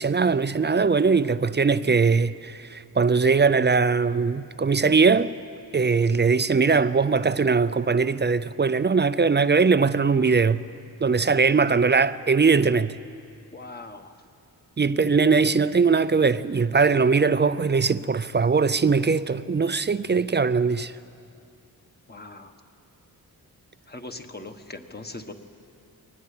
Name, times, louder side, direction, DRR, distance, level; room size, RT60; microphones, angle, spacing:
voice 1, 0.0-5.3 5.7-10.6 11.0-13.0 14.8-20.9, right 5 dB, 30° right, 0.5 m, -21 dB
voice 2, 13.5-14.1 22.1-22.5 23.9-25.3, left 2 dB, 25° left, 1.4 m, -40 dB
22.5 x 19.5 x 8.4 m
wide cardioid pair, 105°, 38 cm